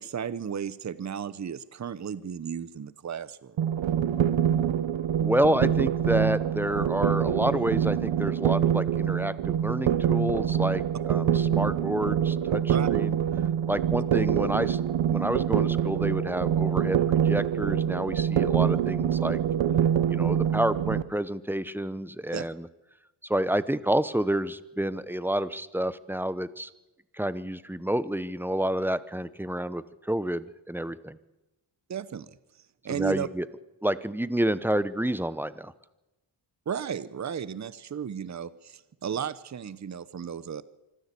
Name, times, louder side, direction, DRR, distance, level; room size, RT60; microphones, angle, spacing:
voice 1, 0.0-3.6 12.7-12.9 22.3-22.5 31.9-32.3 32.8-33.3 36.7-40.6, right 8 dB, 40° right, 17 dB, 0.9 m, -34 dB
sound 1, 3.6-21.0, right 9 dB, 90° right, 0.9 m, -25 dB
voice 2, 5.2-13.2 13.7-14.8 15.1-19.4 20.1-22.7 23.3-26.7 27.1-31.2 32.9-33.5 33.8-35.7, right 1 dB, 5° right, 16 dB, 0.9 m, -29 dB
25.0 x 15.0 x 8.4 m, 1.0 s
wide cardioid pair, 125°, 45 cm